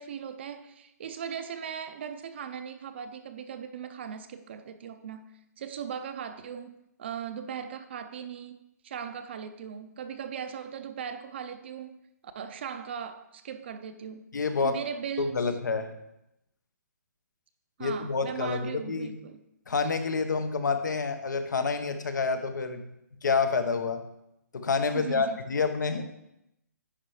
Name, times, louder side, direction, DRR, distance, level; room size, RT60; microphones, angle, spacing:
voice 1, 0.0-12.0 12.2-14.3 14.6-15.5 17.8-19.4 24.9-25.4, right 8 dB, 40° right, 10 dB, 0.5 m, -39 dB
voice 2, 14.3-14.8 15.2-15.9 17.8-19.1 19.7-22.9 23.2-24.0 24.5-26.1, left 4 dB, 80° left, 8 dB, 0.9 m, -28 dB
9.8 x 3.3 x 4.7 m, 0.84 s
hypercardioid pair, 165°, 10 cm